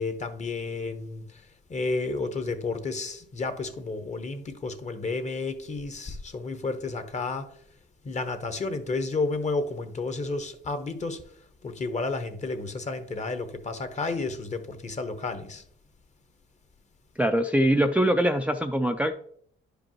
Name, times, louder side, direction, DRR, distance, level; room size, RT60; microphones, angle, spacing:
voice 1, 0.0-1.4 1.7-7.5 8.0-11.2 11.6-15.6, left 3 dB, 35° left, 1.0 m, -31 dB
voice 2, 17.2-19.1, right 1 dB, 5° right, 0.4 m, -23 dB
10.5 x 5.1 x 3.0 m
cardioid pair, 90°, 20 cm